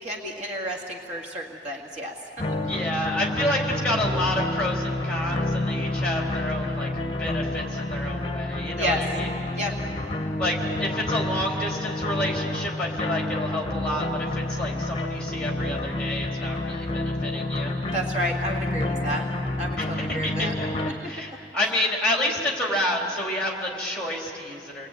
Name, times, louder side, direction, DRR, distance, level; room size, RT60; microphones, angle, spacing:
voice 1, 0.0-2.1 8.8-9.0 9.6-9.7 17.9-19.2 19.6-20.5 21.0-21.1, equal, 40° right, 0 dB, 2.0 m, -30 dB
sound 1, 2.4-20.9, left 1 dB, 30° left, 1.1 m, -29 dB
voice 2, 2.7-9.3 10.4-17.7 19.8-24.9, left 1 dB, 5° left, -1 dB, 3.7 m, -29 dB
29.5 x 21.5 x 9.2 m, 2.7 s
head